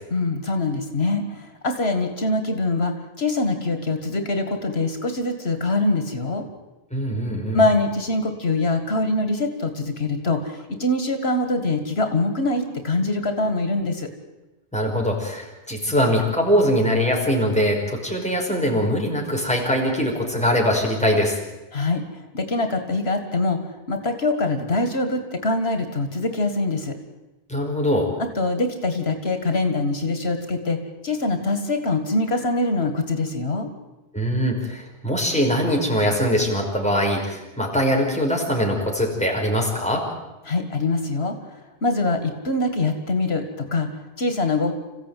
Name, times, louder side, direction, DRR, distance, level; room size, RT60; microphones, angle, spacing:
voice 1, 0.1-6.5 7.5-14.1 21.7-23.6 23.9-27.0 28.2-30.8 31.0-33.7 40.4-44.7, left 2 dB, 85° left, 7 dB, 2.3 m, -24 dB
voice 2, 6.9-7.6 14.7-21.4 27.5-28.1 34.1-40.1, equal, 5° left, -1 dB, 5.5 m, -22 dB
27.5 x 15.5 x 9.3 m, 1.1 s
omnidirectional pair, 1.0 m